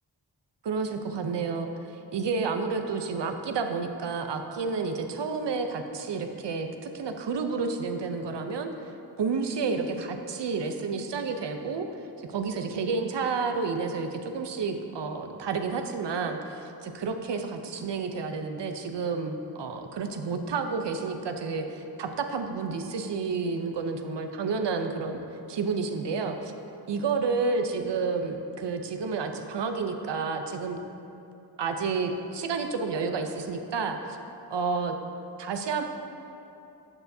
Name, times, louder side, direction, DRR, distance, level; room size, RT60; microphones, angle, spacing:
voice 1, 0.6-1.7 2.1-8.7 9.2-11.9 12.2-25.2 25.5-26.5 26.9-30.8 31.6-34.2 34.5-35.0 35.4-35.8, right 4 dB, 85° right, 6 dB, 0.7 m, -30 dB
12.5 x 6.9 x 2.7 m, 2.8 s
cardioid pair, 50°, 41 cm